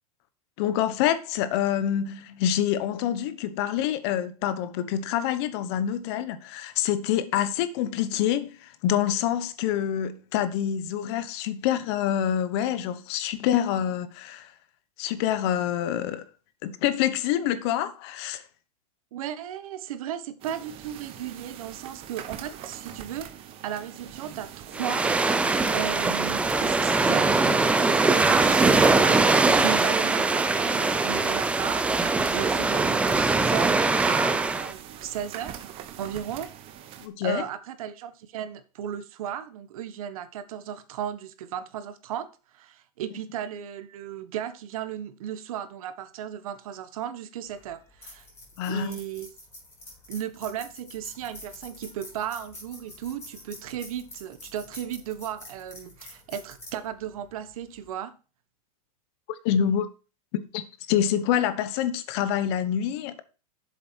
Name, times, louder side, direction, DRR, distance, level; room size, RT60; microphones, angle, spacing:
voice 1, 0.6-14.5 15.0-16.2 16.6-18.4 37.0-37.4 48.6-49.0 59.4-59.9 60.5-60.6 60.9-63.2, left 10 dB, 45° left, 1.1 m, -26 dB
voice 2, 19.1-23.3 23.6-31.9 32.3-36.5 37.2-48.2 48.7-49.3 50.1-58.2, right 10 dB, 70° right, 1.4 m, -35 dB
sound 1, 20.4-37.1, right 10 dB, 30° right, 1.1 m, -43 dB
sound 2, 24.7-34.7, right 3 dB, 5° right, 0.6 m, -22 dB
sound 3, 47.5-57.9, left 1 dB, 10° left, 4.4 m, -47 dB
8.1 x 7.2 x 4.6 m
supercardioid pair, 155°, 19 cm